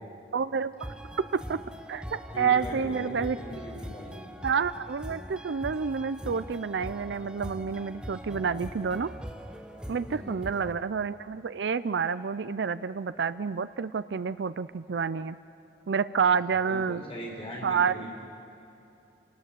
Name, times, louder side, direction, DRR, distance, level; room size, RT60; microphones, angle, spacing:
voice 1, 0.3-0.9 1.3-1.6 1.9-3.4 4.4-9.1 9.9-15.4 15.9-17.0 17.6-18.0, right 6 dB, 80° right, 14 dB, 0.5 m, -29 dB
sound 1, 0.8-10.7, equal, 5° right, 0.9 m, -42 dB
voice 2, 2.3-4.2 10.1-10.6 16.7-18.2, equal, 30° left, -2 dB, 5.2 m, -40 dB
27.5 x 19.0 x 7.6 m, 2.8 s
head